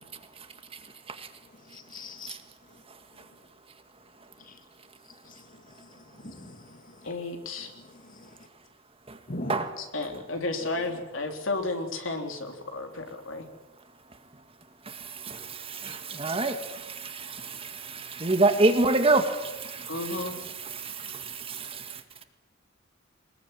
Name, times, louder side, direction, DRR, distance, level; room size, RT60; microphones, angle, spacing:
voice 1, 1.6-2.4 4.4-4.6 5.2-7.1 7.8-8.4 9.3-9.6, left 1 dB, 45° left, 7 dB, 2.5 m, -42 dB
voice 2, 7.0-7.7 9.8-13.5 19.9-20.3, left 2 dB, 75° left, 4 dB, 3.6 m, -32 dB
voice 3, 14.9-22.0, right 2 dB, 30° right, 7 dB, 2.0 m, -28 dB
22.5 x 21.0 x 9.2 m, 1.1 s
head